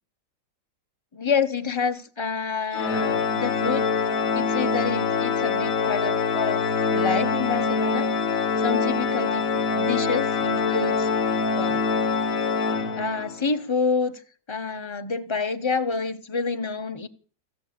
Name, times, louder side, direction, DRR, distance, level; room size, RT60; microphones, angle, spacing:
voice 1, 1.1-3.9 4.3-8.1 8.6-11.1 11.6-11.8 13.0-14.2 14.5-17.1, left 5 dB, 25° left, 0.6 m, -28 dB
Organ, 2.7-13.4, left 5 dB, 55° left, 1.3 m, -24 dB
16.0 x 6.9 x 8.5 m
omnidirectional pair, 1.9 m